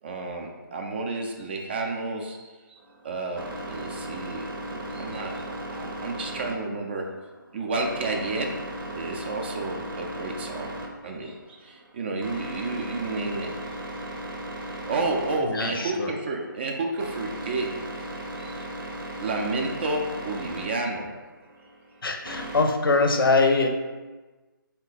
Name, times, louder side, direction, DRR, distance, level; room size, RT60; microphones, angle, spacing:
voice 1, 0.0-2.8 3.0-7.0 7.5-8.5 8.9-10.7 11.0-13.5 14.9-17.7 18.3-18.7 19.2-21.1, right 3 dB, 30° right, 2 dB, 0.4 m, -31 dB
sound 1, 2.8-22.6, right 1 dB, 75° right, 0.8 m, -37 dB
voice 2, 15.4-16.1 22.0-23.7, left 3 dB, 75° left, 5 dB, 0.5 m, -23 dB
3.9 x 2.1 x 4.0 m, 1.3 s
figure-of-eight pair, 150°, 12 cm